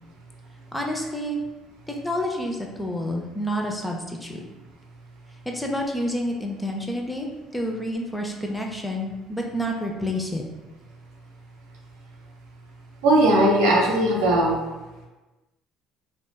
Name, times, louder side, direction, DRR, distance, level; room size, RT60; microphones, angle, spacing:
voice 1, 0.7-1.4 1.9-4.4 5.5-10.4, equal, 10° left, 1 dB, 0.4 m, -29 dB
voice 2, 13.0-14.6, right 1 dB, 85° right, -2 dB, 0.6 m, -18 dB
2.6 x 2.2 x 2.2 m, 1.1 s
supercardioid pair, 80°, 0 cm